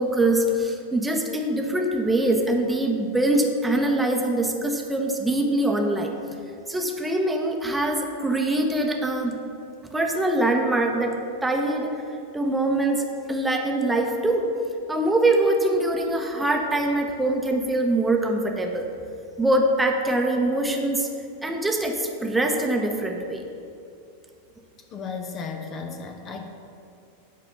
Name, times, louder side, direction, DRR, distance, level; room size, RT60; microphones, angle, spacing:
voice 1, 0.0-6.2 6.7-9.4 9.9-12.0 12.3-14.5 14.9-18.9 19.4-21.1 21.4-23.4, right 1 dB, 5° right, 1 dB, 1.0 m, -23 dB
voice 2, 24.9-26.5, left 5 dB, 30° left, 4 dB, 0.9 m, -34 dB
11.0 x 4.2 x 7.1 m, 2.5 s
figure-of-eight pair, 90°, 0 cm